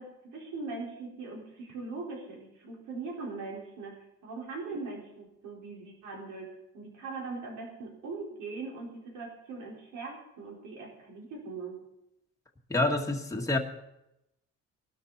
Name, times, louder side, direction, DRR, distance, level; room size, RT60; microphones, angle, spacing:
voice 1, 0.0-3.9 4.2-11.8, right 3 dB, 85° right, -2 dB, 4.8 m, -40 dB
voice 2, 12.7-13.6, left 2 dB, 10° left, 1 dB, 1.7 m, -27 dB
20.0 x 12.5 x 4.3 m, 0.85 s
cardioid pair, 135°, 29 cm